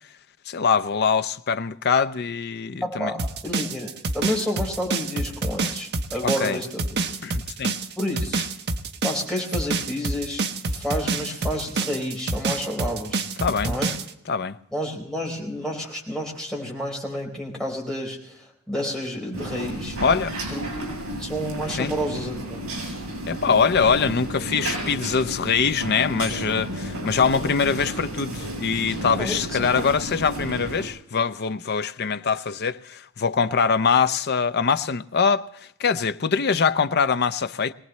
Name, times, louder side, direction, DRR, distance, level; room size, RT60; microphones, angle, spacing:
voice 1, 0.5-3.1 6.2-6.6 7.2-7.8 13.4-13.8 14.3-14.6 20.0-20.4 21.8-21.9 23.3-35.5 35.8-37.7, left 6 dB, 50° left, 0.6 m, -23 dB
voice 2, 2.8-3.2 3.4-7.2 8.0-8.5 9.0-10.4 10.7-13.2 13.6-13.9 14.7-20.0 20.5-20.6 21.0-22.7 29.2-29.9, equal, 5° left, 4.5 m, -30 dB
sound 1, 3.2-14.1, right 3 dB, 50° right, 1.0 m, -27 dB
sound 2, 19.3-30.9, right 1 dB, 75° right, 6.9 m, -32 dB
23.0 x 19.0 x 3.2 m
head